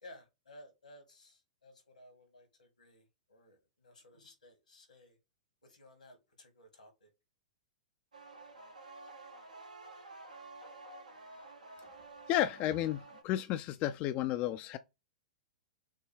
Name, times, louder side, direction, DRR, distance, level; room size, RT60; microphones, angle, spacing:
voice 1, 0.0-5.2 5.6-7.1, left 1 dB, 85° left, 1.9 m, -57 dB
sound 1, 8.1-13.2, right 3 dB, 85° right, 1.1 m, -51 dB
voice 2, 12.3-14.8, left 12 dB, 35° left, 0.4 m, -32 dB
6.3 x 2.2 x 3.4 m
hypercardioid pair, 110°, 4 cm